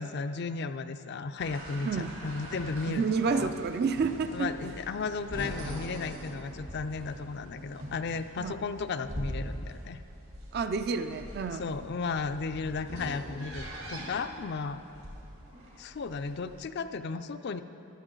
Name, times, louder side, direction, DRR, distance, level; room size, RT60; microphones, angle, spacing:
voice 1, 0.0-3.5 4.3-10.0 11.5-14.8 15.8-17.6, left 4 dB, 50° left, 11 dB, 0.4 m, -35 dB
sound 1, 1.4-16.7, equal, 80° right, 2.9 m, -43 dB
voice 2, 2.9-4.5 8.4-8.5 10.5-11.6, right 5 dB, 45° right, 9 dB, 0.4 m, -29 dB
14.0 x 11.5 x 3.8 m, 2.9 s
head